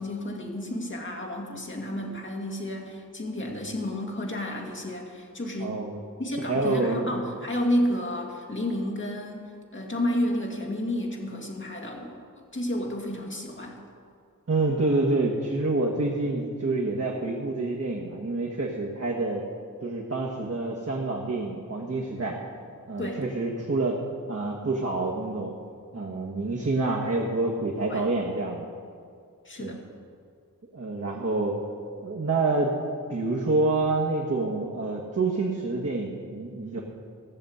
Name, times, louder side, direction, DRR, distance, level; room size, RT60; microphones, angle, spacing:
voice 1, 0.0-5.8 6.2-13.8 23.0-23.2 27.9-28.1 29.4-29.8, left 1 dB, 35° left, 0 dB, 2.3 m, -31 dB
voice 2, 5.6-6.0 6.4-7.1 14.5-19.5 19.8-22.4 22.9-24.0 24.3-25.5 25.9-28.6 29.6-29.8 30.7-31.6 32.0-32.7 33.1-36.8, right 2 dB, 50° right, -2 dB, 1.5 m, -27 dB
16.0 x 7.1 x 8.0 m, 2.3 s
wide cardioid pair, 85°, 33 cm